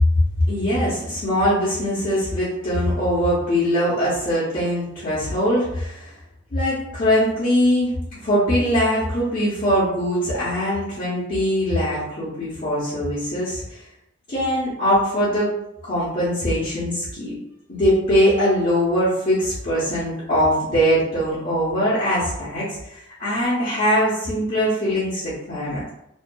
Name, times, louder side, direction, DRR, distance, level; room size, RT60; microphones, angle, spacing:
voice 1, 0.5-6.1 6.5-13.8 14.3-15.5 15.8-17.4 17.7-25.9, equal, 45° left, -10 dB, 0.7 m, -22 dB
2.5 x 2.3 x 2.2 m, 0.82 s
head